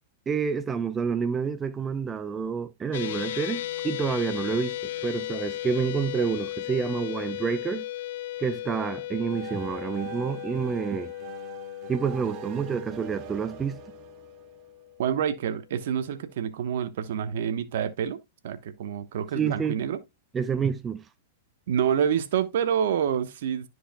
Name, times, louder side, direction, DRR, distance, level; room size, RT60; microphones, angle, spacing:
voice 1, 0.3-4.8 5.0-7.8 8.4-11.1 11.9-13.8 19.3-19.8 20.3-21.0, right 6 dB, 20° right, 0.8 m, -28 dB
sound 1, 2.9-15.3, left 14 dB, 70° left, 0.4 m, -36 dB
sound 2, 9.3-15.0, right 13 dB, 45° right, 0.9 m, -43 dB
voice 2, 15.0-18.2 18.4-20.0 21.7-23.7, right 8 dB, 70° right, 1.0 m, -27 dB
13.0 x 4.7 x 2.2 m
hypercardioid pair, 115°, 0 cm